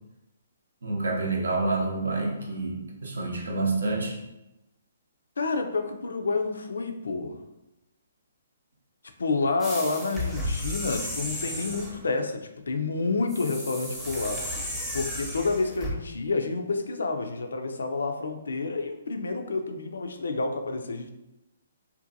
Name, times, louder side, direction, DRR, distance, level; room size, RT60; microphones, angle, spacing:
voice 1, 0.8-4.2, right 3 dB, 75° right, 0 dB, 0.6 m, -28 dB
voice 2, 5.4-7.4 9.2-14.4 14.9-21.1, left 3 dB, 75° left, 6 dB, 0.3 m, -29 dB
sound 1, 9.6-12.0 13.3-15.9, left 1 dB, 5° right, 0.6 m, -33 dB
2.6 x 2.1 x 2.6 m, 0.93 s
hypercardioid pair, 135°, 0 cm